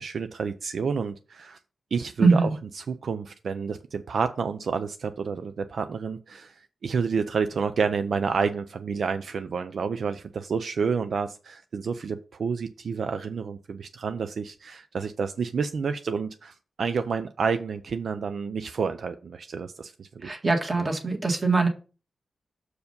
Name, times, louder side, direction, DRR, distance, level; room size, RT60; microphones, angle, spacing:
voice 1, 0.0-1.6 1.9-2.5 2.7-20.1 20.8-20.9, right 5 dB, 70° right, 9 dB, 0.5 m, -29 dB
voice 2, 2.2-2.5 20.2-21.7, right 3 dB, 35° right, 4 dB, 1.7 m, -22 dB
6.5 x 4.8 x 5.2 m, 0.36 s
wide cardioid pair, 110°, 0 cm